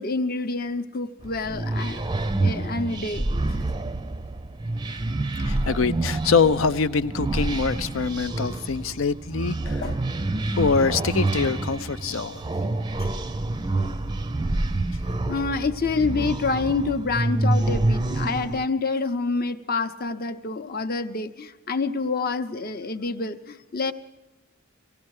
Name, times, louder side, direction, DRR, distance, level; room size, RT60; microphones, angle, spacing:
voice 1, 0.0-2.0 2.4-3.3 9.8-10.0 13.0-13.1 15.3-23.9, left 4 dB, 50° left, 9 dB, 0.8 m, -27 dB
sound 1, 1.2-18.7, right 2 dB, 20° right, 0.5 m, -27 dB
voice 2, 5.4-9.9 10.6-12.5, left 5 dB, 80° left, 14 dB, 0.6 m, -24 dB
17.5 x 16.0 x 4.8 m, 1.1 s
head